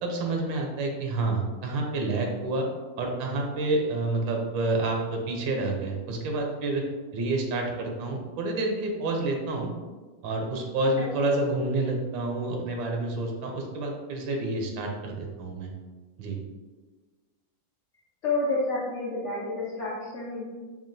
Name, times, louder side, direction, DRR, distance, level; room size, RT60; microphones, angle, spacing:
voice 1, 0.0-2.7 3.0-6.8 7.1-9.7 10.2-15.7 16.2-16.4, right 2 dB, 90° right, 2 dB, 1.4 m, -28 dB
voice 2, 18.2-20.5, left 2 dB, 60° left, -7 dB, 0.8 m, -29 dB
5.9 x 2.3 x 2.6 m, 1.3 s
omnidirectional pair, 2.0 m